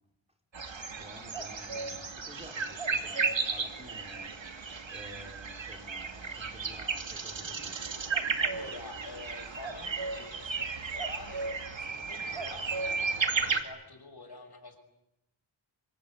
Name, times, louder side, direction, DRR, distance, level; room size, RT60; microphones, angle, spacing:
sound 1, 0.5-13.6, right 4 dB, 70° right, 2.6 m, -34 dB
voice 1, 0.9-7.8, equal, 15° right, 4 dB, 4.5 m, -51 dB
voice 2, 8.2-14.8, left 3 dB, 55° left, 6 dB, 6.2 m, -47 dB
25.5 x 23.5 x 9.7 m, 0.87 s
cardioid pair, 55°, 46 cm